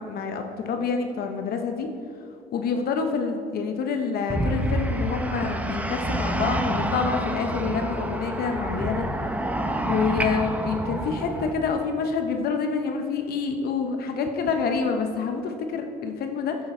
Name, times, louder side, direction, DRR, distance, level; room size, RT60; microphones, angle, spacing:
voice 1, 0.0-1.9 2.5-9.1 9.8-16.6, left 5 dB, 65° left, 5 dB, 0.8 m, -27 dB
sound 1, 4.3-11.5, right 1 dB, 10° right, 0.7 m, -28 dB
10.5 x 7.2 x 4.4 m, 2.6 s
cardioid pair, 110°, 17 cm